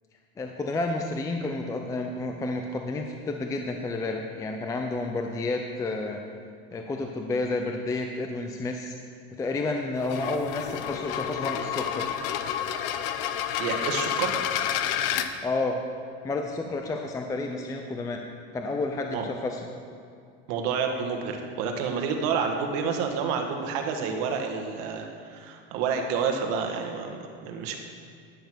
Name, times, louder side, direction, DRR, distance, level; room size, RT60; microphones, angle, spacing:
voice 1, 0.4-6.2 6.7-8.9 9.3-12.1 15.4-15.8 16.2-18.2 18.5-19.6, left 2 dB, 10° left, 3 dB, 0.4 m, -30 dB
sound 1, 10.0-15.3, left 10 dB, 65° left, 0.8 m, -29 dB
voice 2, 13.6-14.4 19.1-19.2 20.5-27.8, right 6 dB, 60° right, 4 dB, 1.5 m, -29 dB
10.5 x 6.5 x 6.1 m, 2.3 s
supercardioid pair, 145°, 30 cm